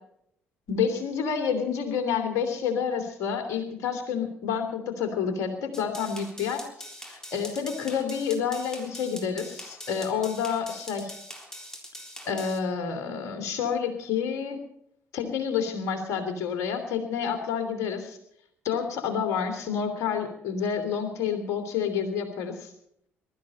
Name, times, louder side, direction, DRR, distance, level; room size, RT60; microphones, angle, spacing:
voice 1, 0.7-6.6 7.1-11.1 12.2-14.6 15.1-18.2 18.6-22.7, left 7 dB, 55° left, 6 dB, 3.1 m, -29 dB
sound 1, 5.7-12.6, equal, 10° left, 3.7 m, -43 dB
22.0 x 13.0 x 4.3 m, 0.73 s
figure-of-eight pair, 45°, 6 cm